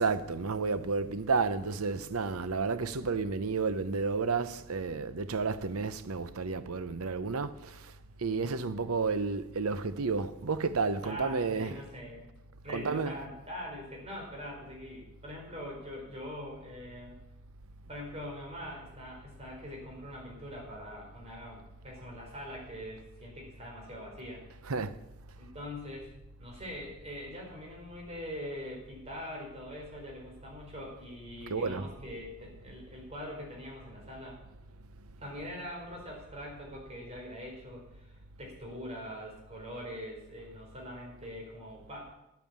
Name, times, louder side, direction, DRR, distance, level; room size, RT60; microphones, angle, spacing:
voice 1, 0.0-7.8 8.2-11.8 12.7-13.1 24.6-24.9 31.5-31.9, right 4 dB, 85° right, 0.8 m, -31 dB
voice 2, 11.0-12.3 12.6-17.2 17.9-24.4 25.4-26.1 26.4-34.4 35.2-42.1, equal, 30° right, 4.4 m, -43 dB
10.5 x 9.0 x 7.4 m
head